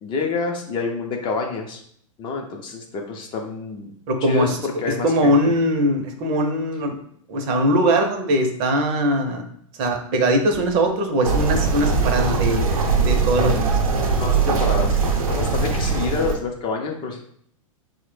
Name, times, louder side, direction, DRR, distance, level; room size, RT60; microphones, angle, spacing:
voice 1, 0.0-1.8 2.2-3.9 4.2-5.5 14.2-15.0 15.3-17.2, left 4 dB, 25° left, 2 dB, 0.4 m, -27 dB
voice 2, 4.1-4.6 4.8-7.0 7.3-9.4 9.8-13.8, equal, 40° right, 4 dB, 0.6 m, -21 dB
sound 1, 11.2-16.4, right 4 dB, 80° right, 0.6 m, -21 dB
3.1 x 2.1 x 3.1 m, 0.65 s
hypercardioid pair, 115°, 18 cm